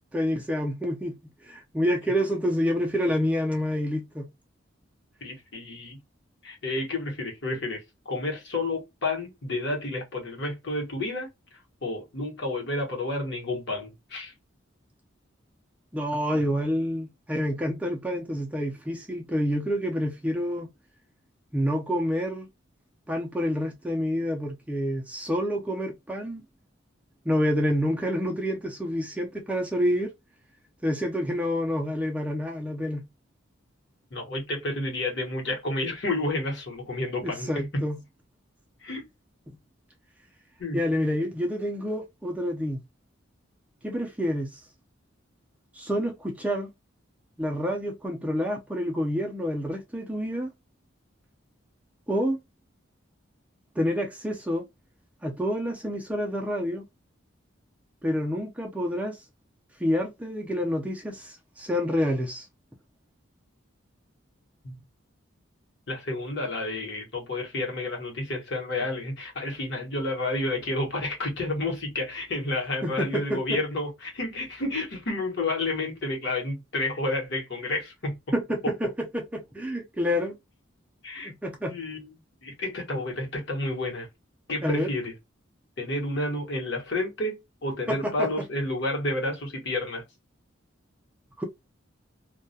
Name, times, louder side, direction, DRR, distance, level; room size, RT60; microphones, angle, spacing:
voice 1, 0.1-1.2 1.4-4.3 15.9-20.7 21.5-22.5 23.1-26.4 27.3-30.1 30.8-33.0 37.2-38.0 39.5-39.6 40.7-42.8 43.8-44.6 45.7-46.7 47.4-50.5 52.1-52.4 53.8-54.6 55.2-56.8 58.0-59.2 59.8-62.5 72.8-73.6 78.3-80.4 81.2-81.8 84.6-84.9 87.9-88.3 91.4-91.5, equal, 5° right, 0.4 m, -28 dB
voice 2, 5.2-6.0 6.4-11.3 11.8-14.3 34.1-37.8 38.8-39.0 40.6-40.8 64.6-64.8 65.9-78.1 81.0-81.3 81.6-82.1 82.4-84.1 84.5-85.1 85.8-87.3 87.6-90.0, left 2 dB, 60° left, 1.0 m, -30 dB
2.2 x 2.1 x 2.6 m
head